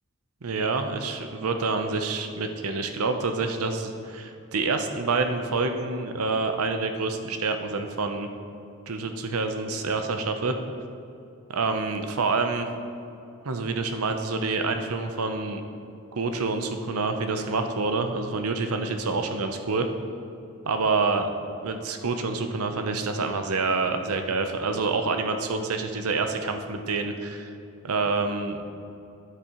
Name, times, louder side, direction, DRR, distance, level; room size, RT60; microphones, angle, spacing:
voice 1, 0.4-8.3 8.9-10.6 11.5-12.7 13.4-15.6 16.1-19.9 20.7-21.3 21.6-27.5 27.8-28.6, right 3 dB, 85° right, 6 dB, 0.7 m, -27 dB
9.8 x 8.4 x 3.0 m, 2.6 s
head